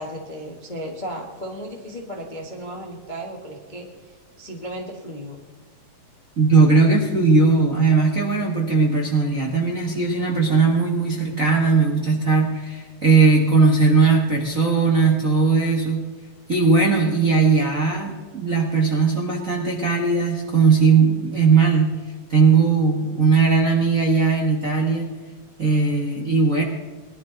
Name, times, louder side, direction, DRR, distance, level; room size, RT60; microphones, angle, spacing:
voice 1, 0.0-5.4, equal, 25° left, 0 dB, 1.0 m, -35 dB
voice 2, 6.4-16.0 16.5-21.9 22.3-25.1 25.6-26.6, right 4 dB, 40° right, -2 dB, 1.2 m, -18 dB
21.0 x 12.0 x 4.0 m, 1.4 s
omnidirectional pair, 3.6 m